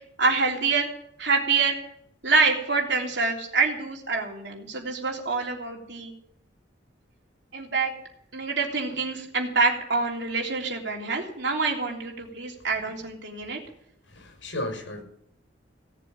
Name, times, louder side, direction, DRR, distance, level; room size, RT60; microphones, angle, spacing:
voice 1, 0.2-0.9 1.2-1.8 2.2-6.1 7.5-7.9 8.3-13.6, right 4 dB, 65° right, -1 dB, 3.4 m, -26 dB
voice 2, 14.1-15.0, left 1 dB, 90° left, 4 dB, 6.1 m, -34 dB
17.5 x 7.7 x 8.8 m, 0.70 s
head